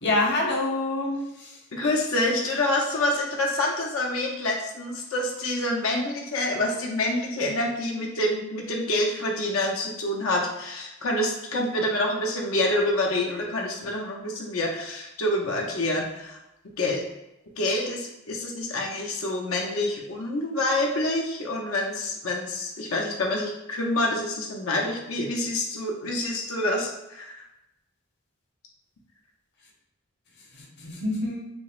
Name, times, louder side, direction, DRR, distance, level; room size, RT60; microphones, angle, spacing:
voice 1, 0.0-1.5 30.5-31.5, left 2 dB, 55° left, -1 dB, 0.9 m, -27 dB
voice 2, 1.7-16.4 16.8-17.0 17.6-27.4, left 1 dB, 80° left, 0 dB, 0.6 m, -27 dB
5.9 x 2.0 x 2.4 m, 0.92 s
head